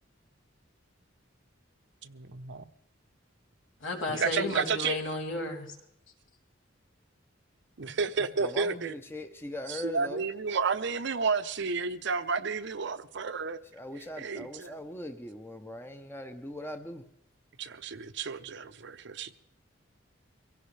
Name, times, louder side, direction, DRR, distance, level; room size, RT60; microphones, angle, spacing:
voice 1, 2.0-2.7 4.1-5.0 7.8-8.9 9.7-13.6 14.2-14.7 17.6-19.3, right 5 dB, 65° right, 0.7 m, -31 dB
voice 2, 3.8-5.7 7.8-7.9, left 2 dB, 75° left, 3.4 m, -33 dB
voice 3, 8.4-10.3 13.7-17.0, left 1 dB, 10° left, 0.8 m, -40 dB
24.0 x 16.5 x 3.3 m
head